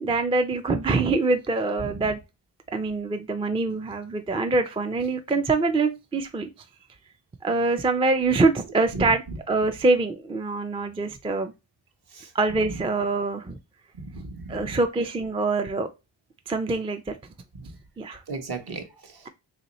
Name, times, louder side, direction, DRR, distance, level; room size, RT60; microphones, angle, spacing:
voice 1, 0.0-2.2 2.7-6.5 7.4-11.5 12.3-13.6 14.5-15.9 16.5-17.2 18.0-18.2, right 3 dB, 15° right, 0.3 m, -24 dB
voice 2, 14.0-14.8 17.6-17.7 18.3-19.3, right 3 dB, 55° right, 1.0 m, -36 dB
3.0 x 2.8 x 4.0 m
cardioid pair, 90°, 46 cm